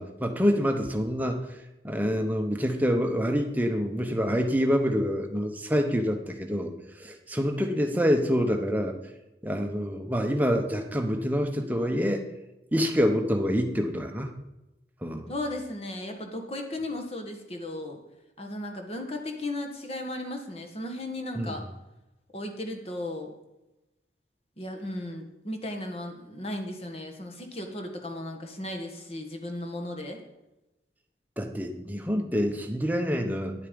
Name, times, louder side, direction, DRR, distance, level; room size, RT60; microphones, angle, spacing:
voice 1, 0.0-1.6 1.8-9.0 9.4-12.2 12.7-14.4 15.0-15.3 21.3-21.6 31.4-33.5, equal, 10° right, 4 dB, 0.9 m, -26 dB
voice 2, 15.3-18.0 18.4-21.6 22.3-23.3 24.6-30.2, left 1 dB, 35° left, 3 dB, 1.5 m, -35 dB
10.5 x 8.2 x 5.3 m, 0.96 s
head